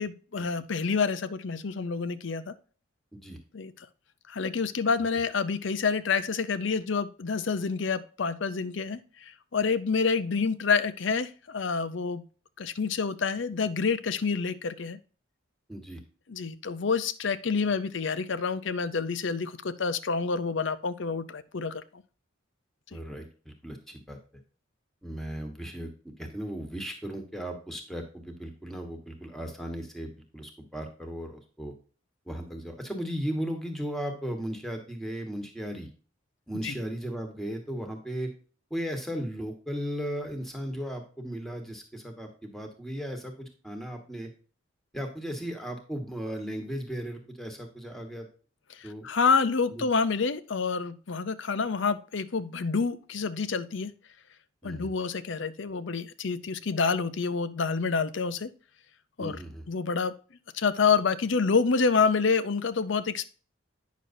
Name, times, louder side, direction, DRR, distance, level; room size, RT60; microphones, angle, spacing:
voice 1, 0.0-2.5 3.5-3.7 4.3-12.2 12.6-15.0 16.3-22.0 36.6-36.7 48.8-53.9 54.6-58.5 59.2-59.4 59.7-60.1 60.5-63.3, left 5 dB, 65° left, 14 dB, 0.6 m, -28 dB
voice 2, 15.7-16.0 22.9-24.2 25.0-31.7 32.3-35.9 36.5-38.3 38.7-44.3 44.9-48.3 48.8-49.1 49.7-49.8 54.6-54.9 59.2-59.6, equal, ahead, 4 dB, 1.4 m, -36 dB
9.3 x 6.2 x 2.7 m, 0.39 s
head